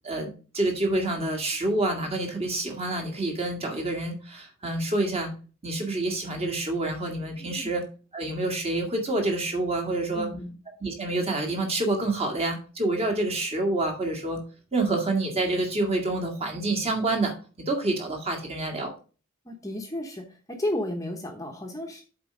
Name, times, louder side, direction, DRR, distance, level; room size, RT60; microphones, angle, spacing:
voice 1, 0.5-5.3 5.6-7.8 8.1-10.3 10.8-14.4 14.7-18.9, right 2 dB, 30° right, 2 dB, 1.8 m, -27 dB
voice 2, 7.4-7.7 10.1-10.6 19.4-22.0, left 1 dB, 15° left, 3 dB, 0.9 m, -33 dB
7.7 x 4.4 x 4.9 m, 0.36 s
head